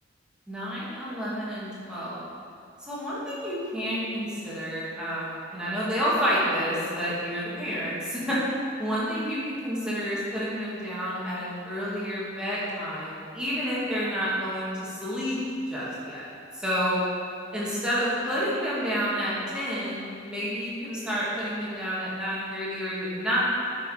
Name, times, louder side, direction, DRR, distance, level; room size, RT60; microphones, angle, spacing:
voice 1, 0.5-2.2 2.8-8.4 8.8-15.4 15.7-16.3 16.5-17.0 17.5-23.4, equal, 5° right, -9 dB, 1.9 m, -29 dB
9.5 x 5.9 x 5.0 m, 2.4 s
head